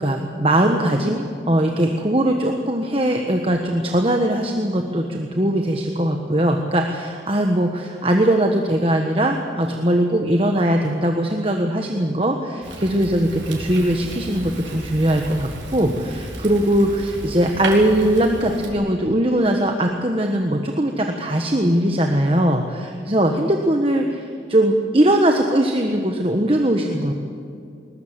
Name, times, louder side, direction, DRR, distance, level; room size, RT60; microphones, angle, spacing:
voice 1, 0.0-27.1, right 1 dB, 30° right, 3 dB, 1.3 m, -20 dB
Fire, 12.6-18.7, right 2 dB, 90° right, 4.7 m, -33 dB
20.5 x 20.5 x 7.6 m, 2.4 s
head